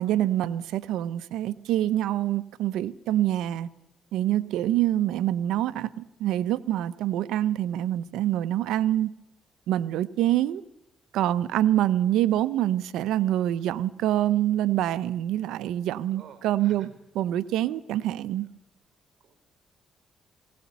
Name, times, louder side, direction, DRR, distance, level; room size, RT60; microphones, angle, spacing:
voice 1, 0.0-3.7 4.1-9.1 9.7-10.6 11.1-16.9 17.2-18.5, right 12 dB, 90° right, 0.8 m, -26 dB
voice 2, 16.1-16.9 17.4-17.5 18.4-18.5 19.2-19.3, right 7 dB, 55° right, 4.7 m, -51 dB
21.0 x 17.5 x 9.4 m
cardioid pair, 90°, 0 cm